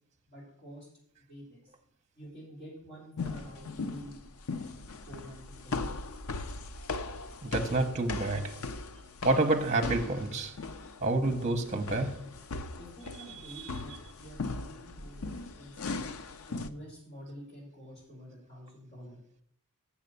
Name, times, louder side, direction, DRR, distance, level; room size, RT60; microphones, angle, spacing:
voice 1, 0.3-0.9 1.3-1.6 2.1-4.2 5.1-6.0 12.7-15.2 15.6-16.0 16.5-19.2, equal, 45° left, 5.1 m, -48 dB
sound 1, 3.2-16.7, left 3 dB, 80° left, 0.6 m, -39 dB
voice 2, 7.4-8.6 9.2-10.6 11.0-12.3, right 2 dB, 30° right, 0.9 m, -28 dB
7.4 x 7.1 x 6.8 m
head